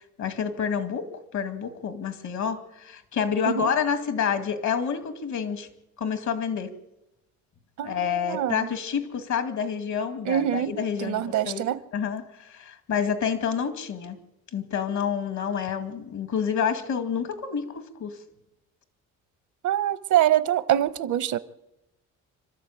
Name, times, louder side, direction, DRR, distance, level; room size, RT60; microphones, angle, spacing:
voice 1, 0.2-5.7 6.0-6.7 7.8-14.2 14.5-18.2, left 7 dB, 70° left, 2.2 m, -28 dB
voice 2, 7.8-8.7 10.2-11.8 19.6-21.4, right 11 dB, 75° right, 1.0 m, -25 dB
26.5 x 12.5 x 8.7 m
cardioid pair, 90°, 30 cm